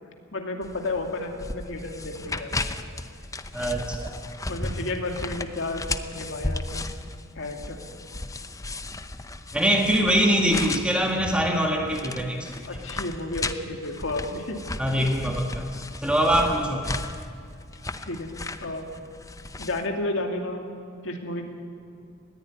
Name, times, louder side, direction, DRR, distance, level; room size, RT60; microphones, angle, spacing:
voice 1, 0.3-2.7 4.5-5.9 6.1-6.9 7.4-7.8 12.7-14.6 18.0-18.3 18.6-18.9 19.6-20.7 21.0-21.4, left 2 dB, 65° left, 3 dB, 2.5 m, -32 dB
sound 1, 0.6-19.9, left 2 dB, 15° left, 0.7 m, -35 dB
voice 2, 3.5-4.2 9.5-12.4 14.8-15.7 16.0-16.8, equal, 5° right, 1 dB, 1.8 m, -23 dB
20.0 x 15.0 x 9.6 m, 2.4 s
head